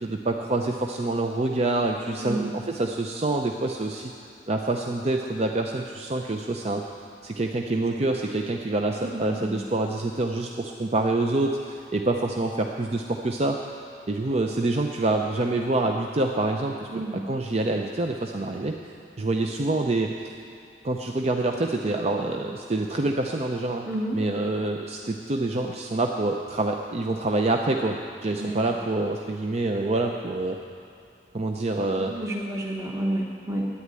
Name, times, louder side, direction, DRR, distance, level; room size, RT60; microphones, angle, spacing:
voice 1, 0.0-4.1 4.5-6.8 7.2-13.6 14.1-18.7 19.2-20.3 20.8-23.9 24.1-30.6 31.3-32.1, right 2 dB, 35° right, 2 dB, 0.6 m, -26 dB
voice 2, 2.2-2.5 9.0-9.6 16.9-17.2 23.9-24.2 28.4-28.6 32.0-33.7, right 1 dB, 15° right, -2 dB, 1.1 m, -30 dB
11.5 x 9.4 x 9.5 m, 2.5 s
head